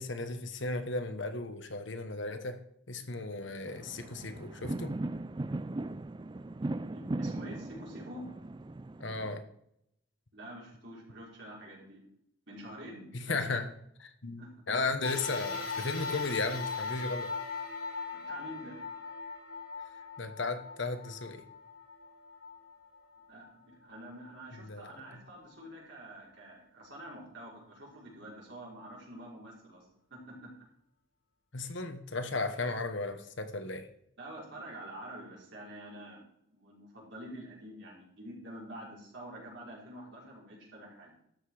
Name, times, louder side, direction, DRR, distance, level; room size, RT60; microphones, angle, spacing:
voice 1, 0.0-2.6 2.9-4.9 9.0-9.4 13.1-13.7 14.0-14.4 14.7-17.3 20.2-21.4 24.6-24.9 31.5-33.9, left 3 dB, 60° left, 8 dB, 1.2 m, -35 dB
sound 1, 3.7-9.3, right 2 dB, 20° right, 0.4 m, -38 dB
voice 2, 6.9-8.2 10.3-12.0 12.5-13.6 14.4-14.5 18.1-18.8 23.3-30.6 34.2-36.2 36.5-41.1, right 1 dB, 55° right, -4 dB, 5.7 m, -47 dB
sound 2, 15.0-23.6 24.2-24.3 25.4-25.5, left 4 dB, 75° left, 3.7 m, -40 dB
13.0 x 8.1 x 5.0 m, 0.73 s
head